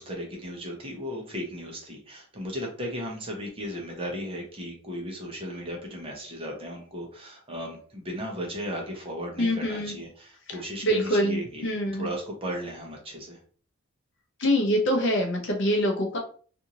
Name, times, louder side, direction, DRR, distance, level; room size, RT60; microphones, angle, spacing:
voice 1, 0.0-13.4, equal, 25° right, 0 dB, 0.7 m, -36 dB
voice 2, 9.4-9.9 10.8-12.1 14.4-16.2, equal, 55° left, 2 dB, 0.7 m, -25 dB
2.6 x 2.5 x 2.8 m, 0.43 s
head